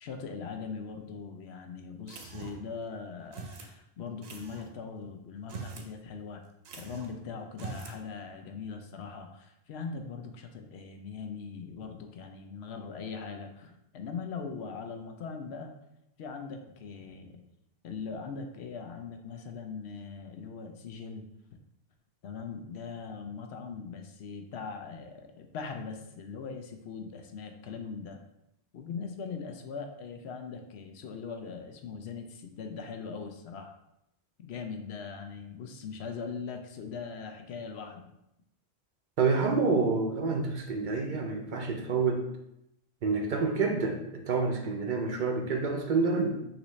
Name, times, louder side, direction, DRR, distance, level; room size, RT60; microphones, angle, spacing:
voice 1, 0.0-6.4 6.8-15.7 16.2-17.4 17.8-21.3 22.2-28.2 28.7-33.7 34.4-38.1, left 5 dB, 80° left, 5 dB, 0.9 m, -40 dB
sound 1, 2.1-2.7 3.3-3.7 4.2-4.7 5.4-5.9 6.2-6.3 6.6-7.2 7.5-8.0, right 4 dB, 80° right, 0.9 m, -43 dB
voice 2, 39.2-42.3 43.0-46.3, right 4 dB, 55° right, 3 dB, 0.6 m, -28 dB
5.8 x 2.6 x 3.1 m, 0.83 s
omnidirectional pair, 1.1 m